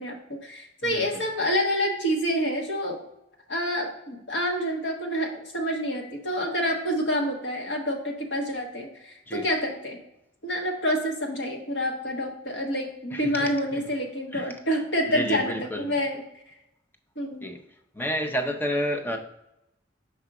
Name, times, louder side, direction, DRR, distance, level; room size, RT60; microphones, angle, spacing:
voice 1, 0.0-3.0 3.5-10.0 10.4-16.2 17.2-17.4, equal, 60° left, 0 dB, 1.3 m, -28 dB
voice 2, 0.8-1.2 9.3-9.5 13.1-13.8 14.3-14.5 15.1-15.9 17.4-17.6 18.0-19.2, equal, 10° left, 5 dB, 0.6 m, -30 dB
5.6 x 4.7 x 3.7 m, 0.85 s
head